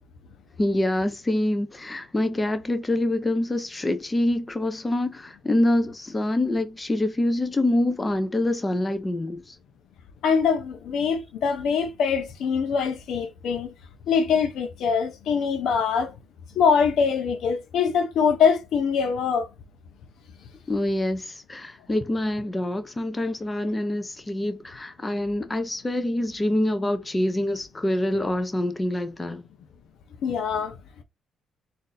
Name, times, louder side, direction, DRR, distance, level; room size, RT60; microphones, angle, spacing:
voice 1, 0.6-9.5 20.7-29.4, left 1 dB, 20° left, 0.7 m, -25 dB
voice 2, 10.2-13.7 14.1-16.1 16.6-19.5 30.2-30.7, left 6 dB, 75° left, 0.7 m, -23 dB
3.8 x 2.7 x 3.9 m
cardioid pair, 90°, 0 cm